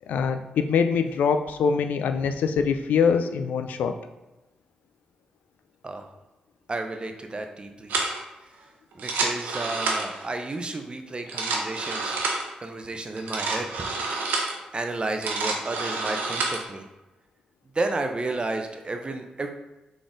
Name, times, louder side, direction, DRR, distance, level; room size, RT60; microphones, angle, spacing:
voice 1, 0.1-4.0, left 6 dB, 85° left, 8 dB, 0.3 m, -24 dB
voice 2, 6.7-8.0 8.4-8.5 8.9-12.2 12.6-13.9 14.7-16.8 17.7-19.5, right 2 dB, 35° right, 5 dB, 0.6 m, -32 dB
sound 1, 7.9-8.2 8.9-10.3 11.1-12.5 13.2-14.6 15.0-16.6, right 3 dB, 90° right, 0.7 m, -28 dB
3.9 x 3.7 x 3.6 m, 1.1 s
cardioid pair, 60°, 3 cm